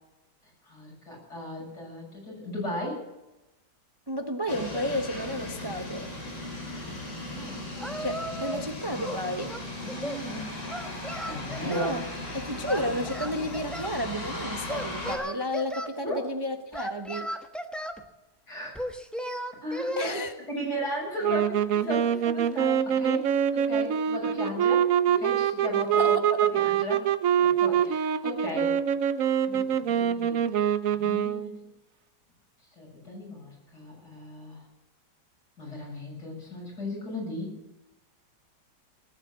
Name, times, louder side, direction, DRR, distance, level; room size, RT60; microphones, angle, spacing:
voice 1, 0.6-3.0 7.3-8.1 9.8-10.5 10.8-12.0 12.7-12.9 16.0-16.2 18.5-18.8 19.6-24.9 25.2-26.2 26.5-27.1 27.4-28.8 29.4-30.6 30.9-31.5 32.8-34.6 35.6-37.5, left 1 dB, 65° left, -2 dB, 7.8 m, -36 dB
voice 2, 4.1-6.1 8.0-9.6 11.6-12.0 12.3-17.3 20.0-20.3 26.0-26.2, equal, 30° right, 5 dB, 0.4 m, -32 dB
sound 1, 4.5-15.2, left 1 dB, 80° left, 5.3 m, -37 dB
Singing, 7.8-8.7 9.0-10.2 10.7-12.0 12.7-14.0 14.7-15.9 16.7-18.0 18.7-20.1, equal, ahead, 0.8 m, -35 dB
sound 2, 21.2-31.6, right 9 dB, 60° right, 1.0 m, -25 dB
19.0 x 9.0 x 8.3 m, 1.0 s
omnidirectional pair, 1.9 m